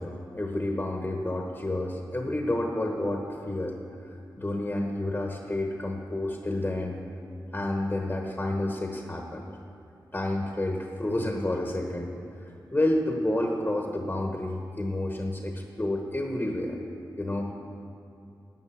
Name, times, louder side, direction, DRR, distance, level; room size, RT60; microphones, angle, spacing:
voice 1, 0.0-3.8 4.1-7.0 7.5-9.4 10.1-12.1 12.4-16.8 17.2-17.5, left 1 dB, 25° left, 2 dB, 1.1 m, -30 dB
11.0 x 8.8 x 7.5 m, 2.6 s
wide cardioid pair, 80°, 8 cm